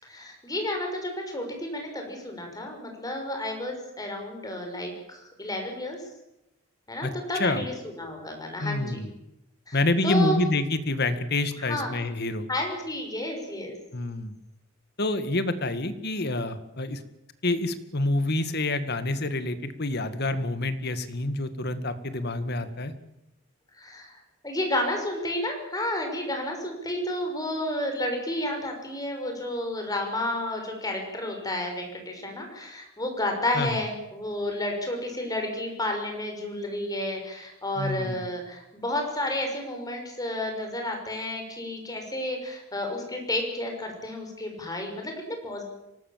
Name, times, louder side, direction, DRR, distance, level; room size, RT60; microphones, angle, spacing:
voice 1, 0.0-6.0 6.9-9.0 9.7-9.8 10.0-10.4 11.7-11.9 12.5-13.7 23.8-24.2 24.4-45.6, left 1 dB, 20° left, 3 dB, 6.1 m, -31 dB
voice 2, 7.0-7.6 8.6-9.1 9.7-12.5 13.9-14.4 15.0-17.0 17.4-22.9 33.5-33.8 37.8-38.2, left 2 dB, 55° left, 11 dB, 1.9 m, -27 dB
25.0 x 19.0 x 7.6 m, 0.88 s
head